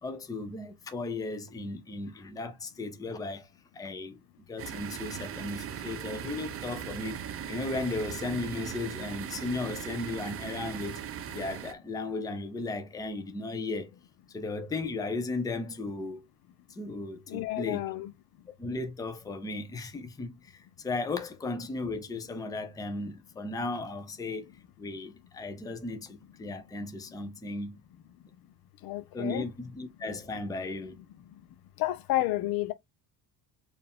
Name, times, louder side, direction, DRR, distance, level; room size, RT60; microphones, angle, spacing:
voice 1, 0.0-7.2 7.5-11.0 11.3-13.9 14.3-16.3 16.7-17.9 18.6-24.5 24.8-27.8 29.1-31.0, left 3 dB, 10° left, 0.5 m, -36 dB
sound 1, 4.6-11.7, right 9 dB, 35° right, 0.5 m, -39 dB
voice 2, 17.3-18.1 28.8-29.4 31.8-32.7, left 16 dB, 65° left, 0.7 m, -30 dB
4.5 x 2.6 x 3.5 m
cardioid pair, 160°, 39 cm